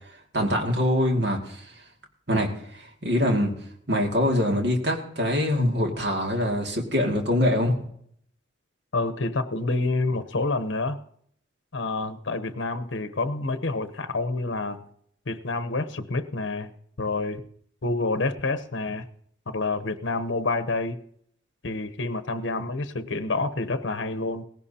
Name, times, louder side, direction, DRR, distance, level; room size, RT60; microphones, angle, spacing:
voice 1, 0.3-1.6 2.3-2.5 2.8-3.5 3.9-7.8, left 1 dB, 55° right, 1 dB, 2.2 m, -24 dB
voice 2, 8.9-11.0 11.7-14.8 15.3-16.7 17.0-17.4 17.8-19.0 19.5-21.0 21.6-24.4, left 3 dB, 70° left, 10 dB, 0.9 m, -28 dB
18.0 x 16.5 x 2.9 m, 0.67 s
head